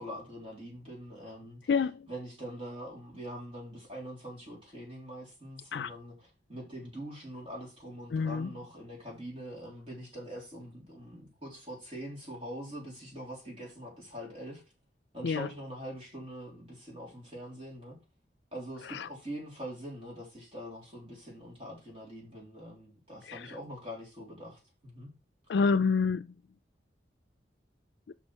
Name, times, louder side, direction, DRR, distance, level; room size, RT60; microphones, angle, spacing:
voice 1, 0.0-1.6 2.1-14.6 15.1-18.0 18.5-25.1, equal, 30° right, 3.8 m, -43 dB
voice 2, 1.7-2.1 5.7-5.9 8.1-8.5 15.2-15.5 18.9-19.1 23.3-23.5 25.5-26.3, left 5 dB, 75° left, 0.4 m, -28 dB
6.0 x 5.5 x 6.2 m
head